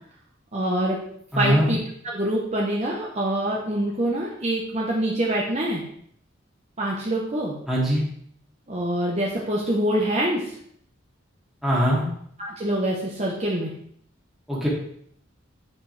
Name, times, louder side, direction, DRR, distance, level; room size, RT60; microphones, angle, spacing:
voice 1, 0.5-1.0 1.4-1.8 2.0-5.8 6.8-7.5 8.7-10.6 12.4-13.7, right 1 dB, 35° right, -4 dB, 1.1 m, -25 dB
voice 2, 1.3-1.7 7.7-8.0 11.6-12.1 14.5-14.7, equal, ahead, -6 dB, 2.2 m, -21 dB
9.4 x 5.1 x 3.4 m, 0.65 s
head